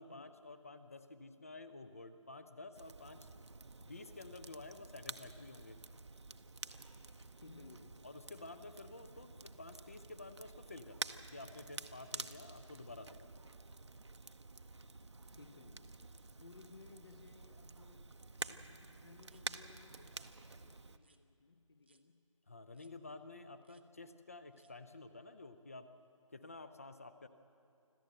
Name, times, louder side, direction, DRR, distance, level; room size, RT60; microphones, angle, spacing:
voice 1, 0.0-3.3 3.8-5.8 8.0-13.6 22.5-25.9 26.3-27.3, left 2 dB, 25° left, 11 dB, 0.6 m, -51 dB
Crackle, 2.7-21.0, right 3 dB, 60° right, 0.8 m, -50 dB
voice 2, 7.4-8.0 15.3-16.0 16.4-22.2, left 3 dB, 45° left, 10 dB, 1.0 m, -60 dB
sound 1, 18.4-18.5 19.2-19.4 20.1-20.3 21.0-21.2 21.8-22.0 22.7-22.9 23.6-23.8 24.5-24.7, right 3 dB, 20° right, 0.5 m, -71 dB
26.0 x 14.5 x 7.9 m, 2.6 s
figure-of-eight pair, 160°, 17 cm